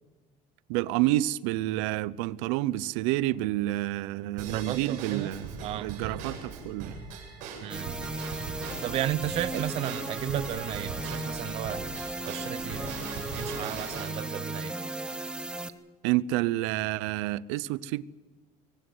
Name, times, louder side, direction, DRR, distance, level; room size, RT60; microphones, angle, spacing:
voice 1, 0.7-5.5 5.8-7.0 9.5-9.6 16.0-18.0, right 16 dB, 85° right, 0.7 m, -29 dB
Drum kit / Drum / Bell, 4.4-14.1, right 5 dB, 55° right, 6.8 m, -40 dB
voice 2, 4.5-5.3 5.6-5.9 7.6-8.0 8.8-11.8 12.3-12.9 13.4-14.7, right 13 dB, 40° right, 0.6 m, -34 dB
sound 1, 7.7-15.7, right 2 dB, 5° right, 0.9 m, -36 dB
23.0 x 17.5 x 8.0 m
cardioid pair, 175°, 15 cm